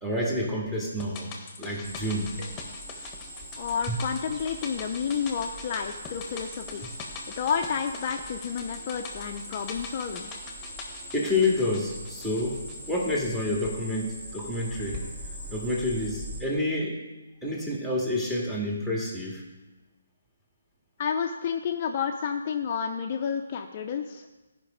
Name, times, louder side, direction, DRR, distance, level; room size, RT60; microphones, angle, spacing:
voice 1, 0.0-1.3 1.6-2.4 3.9-4.0 11.1-12.6 12.9-15.1 15.5-17.0 17.4-19.4, left 1 dB, 5° right, -3 dB, 2.0 m, -28 dB
sound 1, 1.0-13.4 13.6-13.7, left 4 dB, 15° left, 1.4 m, -43 dB
Cricket, 1.8-16.4, equal, 25° right, 2.4 m, -41 dB
voice 2, 3.6-6.9 7.3-10.3 21.0-24.3, left 7 dB, 40° left, 4 dB, 0.6 m, -30 dB
13.5 x 5.3 x 5.1 m, 1.1 s
figure-of-eight pair, 145°, 0 cm